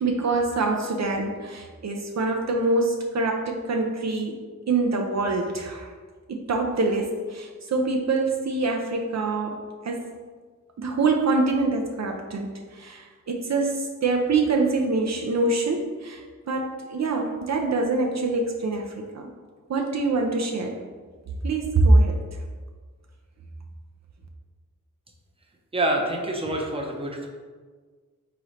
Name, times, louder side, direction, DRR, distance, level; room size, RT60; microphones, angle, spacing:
voice 1, 0.0-4.4 4.7-5.9 6.3-9.6 9.8-10.1 10.8-16.2 16.5-19.3 19.7-20.8 21.4-22.2, right 3 dB, 60° right, 2 dB, 0.5 m, -24 dB
voice 2, 25.7-27.3, right 1 dB, 20° right, 0 dB, 0.6 m, -26 dB
3.8 x 3.1 x 4.1 m, 1.5 s
wide cardioid pair, 100°, 30 cm